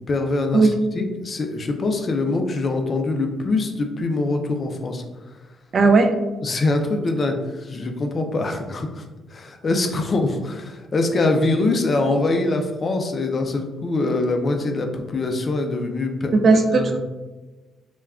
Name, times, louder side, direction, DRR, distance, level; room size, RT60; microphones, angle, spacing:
voice 1, 0.1-5.0 6.4-16.3 16.7-17.0, left 2 dB, 40° left, 4 dB, 0.4 m, -24 dB
voice 2, 5.7-6.1 16.3-17.0, right 3 dB, 50° right, 5 dB, 0.4 m, -16 dB
2.2 x 2.2 x 3.5 m, 1.2 s
cardioid pair, 90°, 0 cm